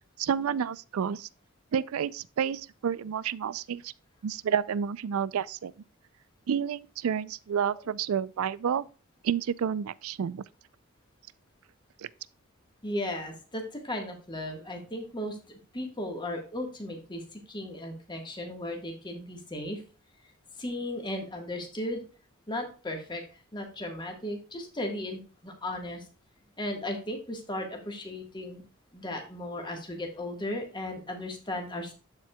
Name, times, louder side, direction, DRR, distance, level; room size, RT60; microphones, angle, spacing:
voice 1, 0.2-1.3 1.7-3.9 4.2-5.7 6.5-8.8 9.2-10.4 12.0-12.1, right 7 dB, 80° right, 0.4 m, -30 dB
voice 2, 12.8-19.8 20.6-22.0 22.5-23.2 23.5-26.0 26.6-28.6 28.9-31.9, left 1 dB, 20° left, 1.4 m, -36 dB
13.0 x 4.5 x 2.3 m
head